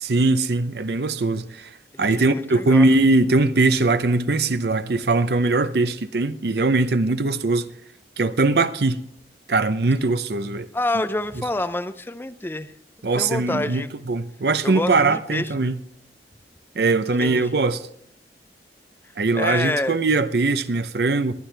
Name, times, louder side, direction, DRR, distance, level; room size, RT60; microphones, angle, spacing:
voice 1, 0.0-1.7 2.0-7.7 8.2-9.0 9.5-10.7 13.0-15.8 16.8-17.8 19.2-21.3, right 3 dB, 65° right, 0.6 m, -21 dB
voice 2, 1.9-2.9 10.7-12.7 13.2-13.9 14.6-15.7 17.2-17.6 19.3-20.0, left 2 dB, 10° left, 0.5 m, -27 dB
23.0 x 9.1 x 3.4 m
head